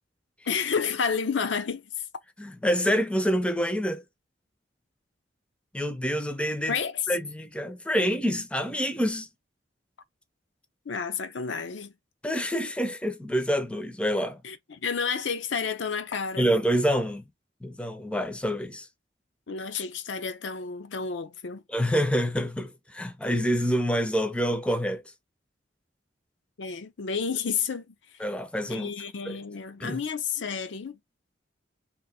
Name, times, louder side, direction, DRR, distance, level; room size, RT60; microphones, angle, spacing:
voice 1, 0.5-2.1 6.7-7.1 10.9-11.9 14.4-16.5 19.5-21.6 26.6-28.2 28.7-31.0, left 6 dB, 85° left, 0.6 m, -31 dB
voice 2, 2.4-4.0 5.7-6.8 7.1-9.3 12.2-14.4 16.4-17.2 17.6-18.9 21.7-25.0 28.2-28.9 29.3-29.4 29.8-30.0, equal, 5° left, 0.5 m, -27 dB
2.9 x 2.5 x 3.9 m
head